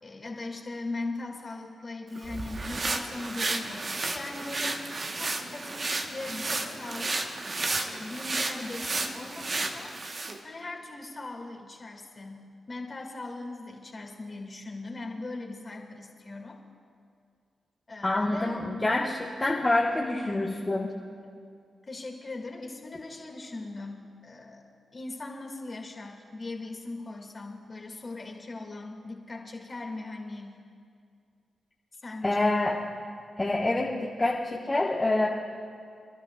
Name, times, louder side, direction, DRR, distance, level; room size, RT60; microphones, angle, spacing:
voice 1, 0.0-4.8 5.1-7.3 7.9-9.9 10.4-16.6 17.9-18.6 21.9-24.6 24.9-30.6 32.0-32.6, left 2 dB, 45° left, 2 dB, 2.0 m, -39 dB
sound 1, 2.1-10.4, right 2 dB, 50° right, 1.1 m, -32 dB
voice 2, 18.0-21.0 32.2-32.8 33.4-35.3, left 2 dB, 30° left, -3 dB, 1.2 m, -26 dB
28.0 x 12.0 x 2.3 m, 2.3 s
supercardioid pair, 40°, 0 cm